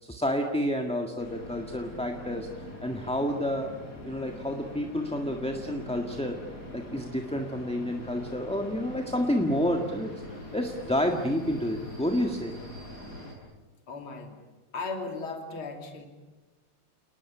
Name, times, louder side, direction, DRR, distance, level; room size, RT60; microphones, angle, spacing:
voice 1, 0.0-3.7 4.0-6.4 6.7-12.6, equal, 5° left, 3 dB, 1.5 m, -30 dB
sound 1, 1.2-13.3, left 1 dB, 45° left, 6.7 m, -43 dB
voice 2, 13.9-14.3 14.7-16.1, left 3 dB, 70° left, 3 dB, 3.9 m, -36 dB
29.0 x 20.0 x 10.0 m, 1.2 s
omnidirectional pair, 2.4 m